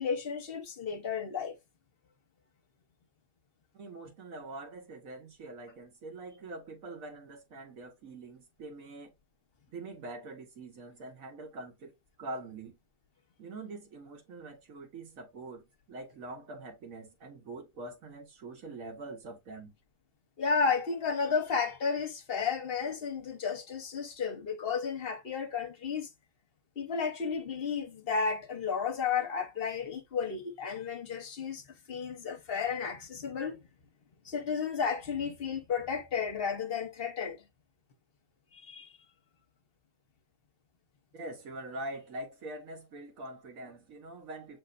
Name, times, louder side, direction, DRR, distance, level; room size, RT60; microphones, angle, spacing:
voice 1, 0.0-1.6 20.4-26.1 26.8-33.6 34.2-37.4 38.5-38.9, left 6 dB, 45° left, 0.9 m, -33 dB
voice 2, 3.7-9.1 9.7-12.8 13.4-19.7 41.1-44.6, right 2 dB, 70° right, 1.7 m, -44 dB
6.3 x 3.4 x 2.4 m
omnidirectional pair, 1.5 m